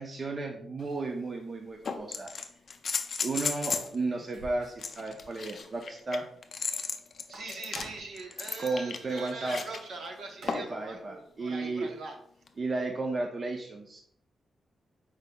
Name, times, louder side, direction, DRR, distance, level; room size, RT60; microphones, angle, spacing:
voice 1, 0.0-2.3 3.2-6.3 8.6-9.6 10.4-11.9 12.6-14.0, right 3 dB, 30° right, 3 dB, 0.4 m, -33 dB
sound 1, 0.8-0.9 1.8-3.9 4.8-9.8 10.5-10.8 12.5-12.6, left 5 dB, 45° left, 0.4 m, -35 dB
sound 2, 1.8-2.0 3.5-4.9 5.2-5.3 5.6-5.7 7.1-8.2 10.0-10.1 10.3-10.9, right 1 dB, 85° right, 1.7 m, -48 dB
voice 2, 7.3-12.2, right 3 dB, 65° right, 3 dB, 0.9 m, -42 dB
5.2 x 4.6 x 2.2 m, 0.64 s
wide cardioid pair, 165°, 0 cm